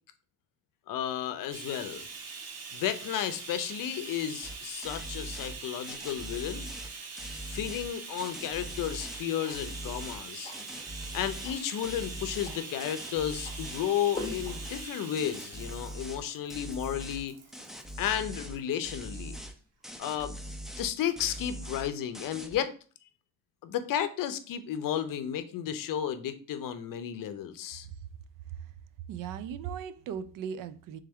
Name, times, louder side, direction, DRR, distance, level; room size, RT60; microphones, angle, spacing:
voice 1, 0.9-2.1 2.7-6.7 7.5-10.5 11.1-17.3 18.0-19.4 20.0-20.4 20.8-22.7 23.6-27.9, left 10 dB, 65° left, 0.6 m, -33 dB
Bathtub (filling or washing), 1.5-18.1 19.1-19.2 19.6-19.7, right 4 dB, 45° right, 0.9 m, -44 dB
sound 1, 4.4-4.6 4.8-5.6 5.8-7.9 8.2-9.2 9.5-10.2 10.5-11.5 11.8-13.9 14.1-14.9 15.2-16.2 16.5-17.2 17.5-18.6 18.8-19.5 19.8-20.9 21.2-21.9 22.1-22.6, equal, ahead, 0.4 m, -42 dB
sound 2, 8.5-14.7, left 3 dB, 15° left, 0.8 m, -47 dB
voice 2, 29.1-31.0, right 8 dB, 65° right, 0.5 m, -37 dB
3.4 x 3.3 x 3.5 m
cardioid pair, 120°, 36 cm